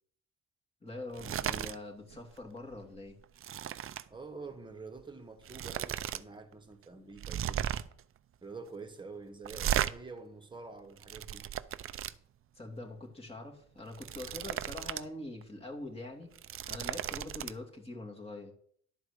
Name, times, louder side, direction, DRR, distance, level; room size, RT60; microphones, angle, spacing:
voice 1, 0.8-3.2 12.6-16.4 16.7-18.5, left 2 dB, 20° left, 2.4 m, -44 dB
sound 1, 1.1-1.8 2.1-2.4 2.7-4.1 5.0-5.1 5.4-6.2 6.5-6.6 7.2-8.0 9.4-9.9 10.7-12.1 13.8-15.1 15.4-15.5 16.2-17.5, right 10 dB, 45° right, 0.5 m, -35 dB
voice 2, 4.1-7.7 8.4-11.5, right 4 dB, 15° right, 1.4 m, -47 dB
11.5 x 4.7 x 6.6 m
cardioid pair, 90°, 30 cm